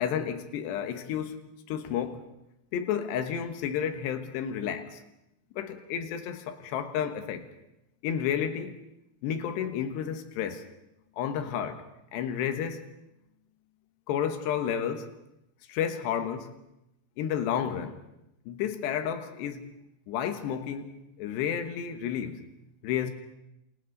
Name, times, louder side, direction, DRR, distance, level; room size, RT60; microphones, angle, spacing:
voice 1, 0.0-2.2 2.7-5.0 5.6-7.4 8.0-8.8 9.2-10.6 11.2-11.8 12.1-12.9 14.1-15.1 15.7-16.5 17.2-18.0 18.5-19.7 20.1-22.4 22.8-23.1, left 8 dB, 90° left, 7 dB, 3.5 m, -31 dB
28.0 x 28.0 x 4.0 m, 0.88 s
omnidirectional pair, 4.8 m